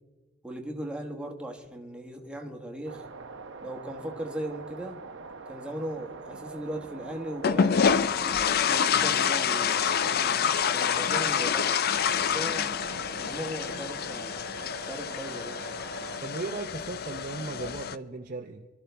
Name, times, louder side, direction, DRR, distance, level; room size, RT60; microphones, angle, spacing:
voice 1, 0.4-3.0 3.6-5.0 5.5-8.4 8.6-10.3 10.7-12.8 13.2-14.5 14.8-15.6, right 1 dB, 5° right, 2 dB, 1.2 m, -38 dB
sound 1, 2.9-16.2, right 4 dB, 60° right, 0.9 m, -43 dB
sound 2, 7.4-18.0, left 7 dB, 45° left, 0.4 m, -27 dB
voice 2, 16.2-18.7, right 3 dB, 40° right, 3 dB, 0.6 m, -36 dB
26.5 x 13.0 x 3.4 m, 1.3 s
head